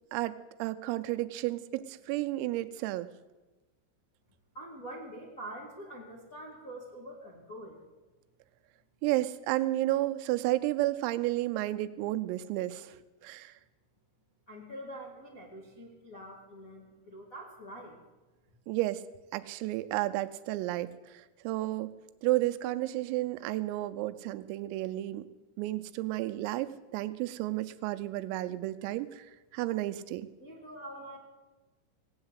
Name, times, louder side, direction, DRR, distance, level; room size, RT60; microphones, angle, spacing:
voice 1, 0.1-3.1 9.0-13.5 18.7-19.0 19.3-21.9 22.2-25.2 25.6-29.3 29.5-30.3, right 16 dB, 90° right, 11 dB, 3.4 m, -32 dB
voice 2, 4.5-7.8 14.5-17.9 30.4-31.2, right 1 dB, 70° left, -4 dB, 0.7 m, -45 dB
18.5 x 8.7 x 8.1 m, 1.2 s
omnidirectional pair, 5.9 m